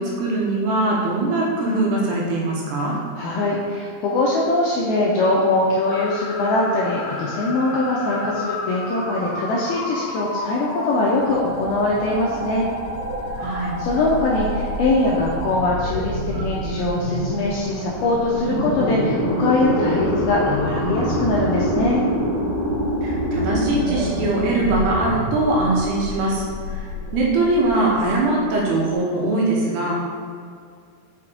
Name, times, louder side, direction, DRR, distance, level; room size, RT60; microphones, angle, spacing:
voice 1, 0.0-3.0 13.4-13.8 23.0-29.9, right 2 dB, 75° right, -4 dB, 2.8 m, -22 dB
voice 2, 3.2-12.7 13.8-22.0, left 2 dB, 90° left, -4 dB, 2.2 m, -22 dB
sound 1, 5.9-15.6, left 1 dB, 75° left, 2.7 m, -31 dB
sound 2, 11.2-28.9, equal, 50° right, 2.6 m, -26 dB
6.1 x 5.7 x 3.7 m, 2.2 s
omnidirectional pair, 5.1 m